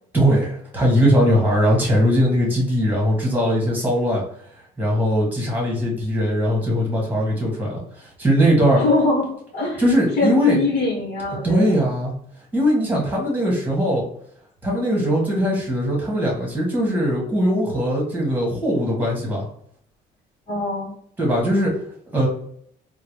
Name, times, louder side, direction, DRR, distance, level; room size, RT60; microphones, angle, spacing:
voice 1, 0.1-4.2 4.8-8.8 9.8-10.6 11.4-12.1 12.5-14.0 14.6-19.4 21.2-21.7 22.1-22.3, equal, 10° right, -3 dB, 1.5 m, -20 dB
voice 2, 8.8-9.2 9.5-9.8 10.2-11.8 20.5-20.9, left 2 dB, 45° left, -3 dB, 1.2 m, -22 dB
3.8 x 2.2 x 3.1 m, 0.66 s
cardioid pair, 110°, 17 cm